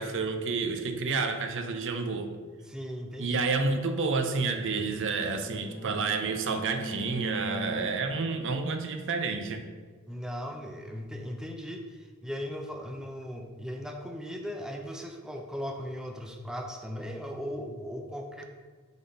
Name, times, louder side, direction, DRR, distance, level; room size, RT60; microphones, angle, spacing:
voice 1, 0.0-2.3 3.2-9.7, right 4 dB, 60° right, 7 dB, 0.6 m, -30 dB
voice 2, 2.6-3.4 10.1-18.4, equal, 5° right, 2 dB, 0.5 m, -38 dB
Bowed string instrument, 4.5-8.3, right 1 dB, 30° right, 1.8 m, -39 dB
7.1 x 4.1 x 5.3 m, 1.4 s
head